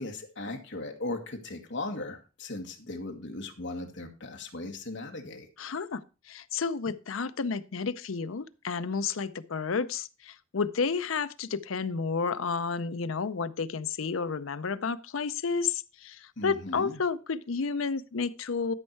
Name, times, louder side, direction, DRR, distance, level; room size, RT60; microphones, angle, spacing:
voice 1, 0.0-5.5 16.4-17.0, left 2 dB, 60° left, 4 dB, 1.7 m, -37 dB
voice 2, 5.6-6.0 6.3-18.7, left 5 dB, 75° left, 13 dB, 0.6 m, -31 dB
12.0 x 5.4 x 4.5 m, 0.32 s
head